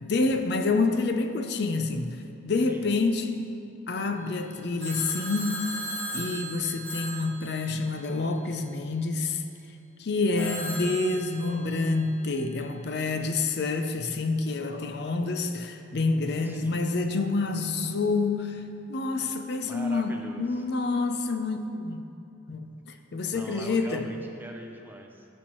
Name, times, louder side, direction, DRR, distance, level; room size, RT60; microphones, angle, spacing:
voice 1, 0.0-3.5 3.9-5.8 6.1-9.4 10.0-22.1 22.5-24.1, left 3 dB, 60° left, 7 dB, 0.5 m, -28 dB
Telephone, 4.8-8.1 10.4-11.9, equal, 10° left, 2.1 m, -37 dB
voice 2, 10.4-11.1 16.4-16.9 19.6-20.6 23.3-25.3, right 1 dB, 10° right, 2 dB, 0.6 m, -43 dB
14.5 x 6.3 x 3.0 m, 2.6 s
head